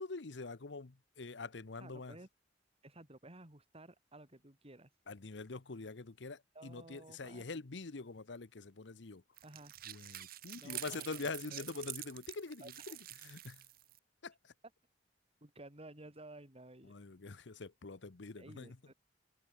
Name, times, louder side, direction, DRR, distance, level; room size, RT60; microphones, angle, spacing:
voice 1, 0.0-2.2 5.1-9.2 9.9-13.6 14.2-14.3 16.8-18.8, left 3 dB, 70° left, 0.9 m, -45 dB
voice 2, 1.8-2.3 2.8-4.9 6.5-7.4 9.4-9.7 10.5-11.6 12.6-13.0 15.4-16.9 18.4-18.9, right 2 dB, 35° right, 4.3 m, -54 dB
sound 1, 9.4-14.0, right 14 dB, 55° right, 1.0 m, -47 dB
head